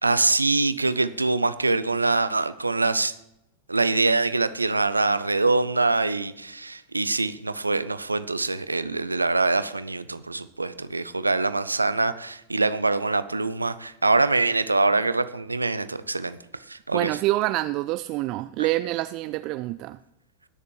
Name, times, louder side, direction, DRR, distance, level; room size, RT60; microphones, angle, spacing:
voice 1, 0.0-3.1 3.7-16.4 16.7-17.1, right 3 dB, 80° right, 14 dB, 0.6 m, -24 dB
voice 2, 16.9-20.0, right 17 dB, 40° right, 14 dB, 0.4 m, -26 dB
19.5 x 6.8 x 4.8 m, 0.85 s
figure-of-eight pair, 90°, 0 cm